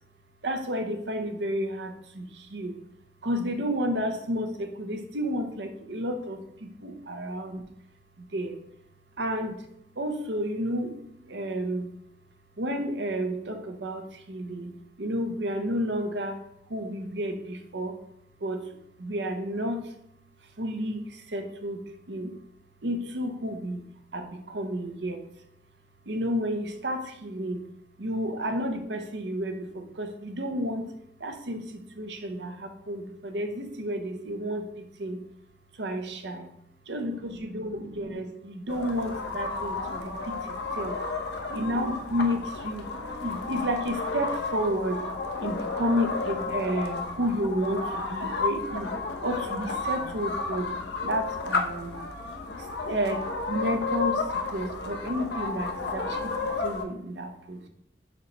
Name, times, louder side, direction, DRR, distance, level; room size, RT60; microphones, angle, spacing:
voice 1, 0.4-2.8 3.2-7.6 8.2-8.6 9.2-9.7 10.0-11.9 12.6-14.7 15.0-16.4 16.7-18.0 18.4-18.7 19.0-19.9 20.6-22.3 22.8-23.8 24.1-25.2 26.1-27.6 28.0-30.9 31.2-35.2 35.7-36.5 36.9-41.0 41.5-42.9 43.2-45.0 45.4-48.9 49.2-50.7 51.0-52.0 52.6-57.7, equal, 75° right, 5 dB, 0.8 m, -31 dB
sound 1, 38.7-56.8, left 3 dB, 70° left, 0.8 m, -32 dB
6.3 x 3.1 x 5.2 m, 0.75 s
head